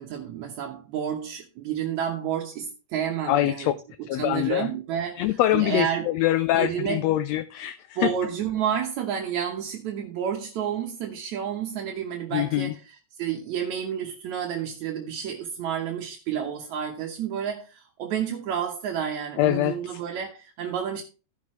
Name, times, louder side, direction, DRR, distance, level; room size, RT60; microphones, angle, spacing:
voice 1, 0.0-3.7 4.2-6.1 6.6-7.0 8.0-21.0, right 9 dB, 75° right, 2.4 m, -30 dB
voice 2, 3.3-3.7 4.1-4.7 5.2-8.1 12.3-12.7 19.4-20.0, left 14 dB, 80° left, 1.6 m, -24 dB
16.0 x 6.0 x 3.1 m
omnidirectional pair, 3.4 m